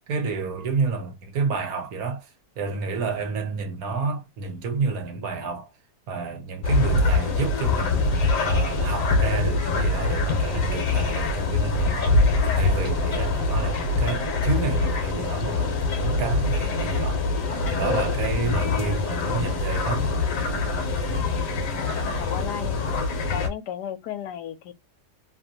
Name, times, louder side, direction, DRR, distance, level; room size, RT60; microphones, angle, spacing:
voice 1, 0.1-2.3 2.6-5.7 6.1-8.0 8.4-12.2 12.5-17.2 17.7-20.1, right 4 dB, 65° right, 1.2 m, -29 dB
sound 1, 6.6-23.5, left 3 dB, 60° left, 1.1 m, -24 dB
voice 2, 21.5-22.8 23.2-24.7, left 9 dB, 80° left, 1.1 m, -35 dB
2.9 x 2.6 x 2.6 m
omnidirectional pair, 1.8 m